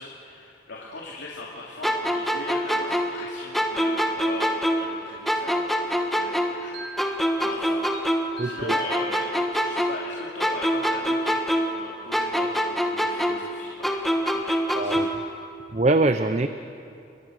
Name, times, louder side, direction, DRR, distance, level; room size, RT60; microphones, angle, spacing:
voice 1, 0.0-15.2, left 2 dB, 90° left, -4 dB, 2.9 m, -39 dB
sound 1, 1.8-5.0 5.3-8.4 8.7-11.8 12.1-15.3, equal, ahead, 1.5 m, -25 dB
sound 2, 6.7-9.8, right 3 dB, 70° right, 5.6 m, -43 dB
voice 2, 8.4-8.7 14.7-15.2 15.7-16.5, right 2 dB, 35° right, 9 dB, 0.7 m, -23 dB
30.0 x 22.5 x 6.5 m, 2.6 s
head